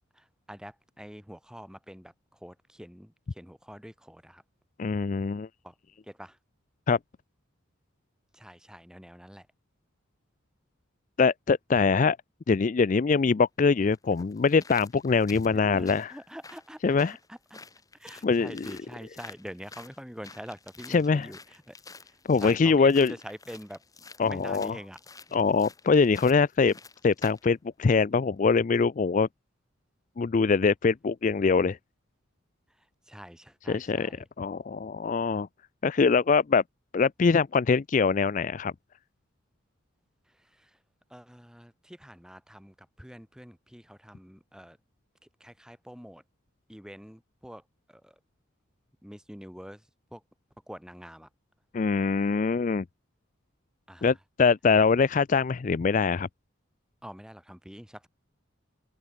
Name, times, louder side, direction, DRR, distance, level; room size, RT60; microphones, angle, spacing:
voice 1, 0.2-2.1 2.4-4.4 5.6-5.7 6.1-6.4 8.3-9.5 15.6-17.0 17.3-17.6 18.0-21.7 22.4-23.8 24.2-25.0 33.1-34.2 40.6-40.7 41.1-44.8 45.4-46.2 46.7-47.6 47.9-48.1 49.0-49.8 50.1-50.2 50.7-51.3 53.9-54.1 57.0-58.1, equal, 5° right, 3.1 m, -45 dB
voice 2, 4.8-5.5 6.9-7.0 11.2-12.2 12.5-16.1 16.8-17.2 18.2-18.7 20.9-21.3 22.3-23.1 24.2-24.8 25.3-26.7 27.0-29.3 30.2-31.8 33.7-34.1 34.4-35.5 35.8-36.6 36.9-38.7 51.7-52.8 54.0-56.3, left 4 dB, 35° left, 0.4 m, -23 dB
sound 1, 13.1-13.2 13.9-27.5 27.9-28.0, left 4 dB, 15° left, 2.3 m, -50 dB
open air
head